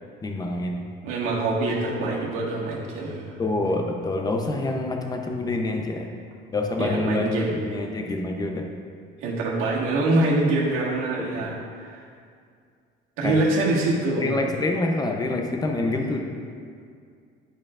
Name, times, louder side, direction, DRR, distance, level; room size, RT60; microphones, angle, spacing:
voice 1, 0.2-0.8 3.4-6.1 6.5-8.7 11.2-11.5 13.2-13.4 14.2-16.2, left 2 dB, 20° left, 2 dB, 0.7 m, -26 dB
voice 2, 1.0-3.4 6.8-7.8 9.2-12.0 13.2-14.4 16.0-16.1, right 2 dB, 75° right, -5 dB, 1.7 m, -25 dB
10.5 x 5.0 x 2.5 m, 2.2 s
cardioid pair, 125°, 21 cm